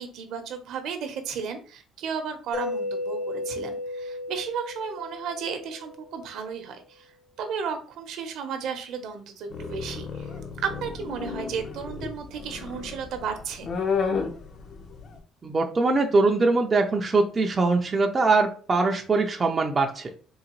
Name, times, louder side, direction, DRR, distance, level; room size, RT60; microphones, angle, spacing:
voice 1, 0.0-7.1 7.4-10.3 10.6-13.7, right 6 dB, 65° right, 6 dB, 0.7 m, -34 dB
Mallet percussion, 2.5-6.3, left 2 dB, 60° left, 1.0 m, -34 dB
sound 1, 9.5-15.2, left 5 dB, 40° left, 0.6 m, -32 dB
voice 2, 15.4-20.1, right 3 dB, 20° right, 2 dB, 0.4 m, -22 dB
3.8 x 2.7 x 3.0 m, 0.39 s
cardioid pair, 165°, 0 cm